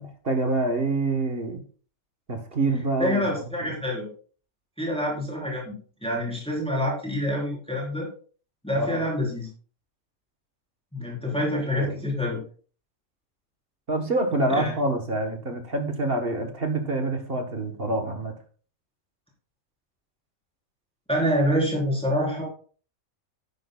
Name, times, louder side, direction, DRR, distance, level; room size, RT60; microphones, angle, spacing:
voice 1, 0.0-1.6 2.3-3.2 3.6-3.8 8.7-9.0 11.7-12.0 13.9-18.3, right 2 dB, 45° right, 5 dB, 1.4 m, -26 dB
voice 2, 3.0-4.1 4.8-5.8 6.0-8.1 8.6-9.5 10.9-12.4 14.6-14.7 21.1-22.4, equal, 5° left, -4 dB, 3.9 m, -26 dB
12.5 x 11.0 x 2.3 m, 0.40 s
omnidirectional pair, 1.5 m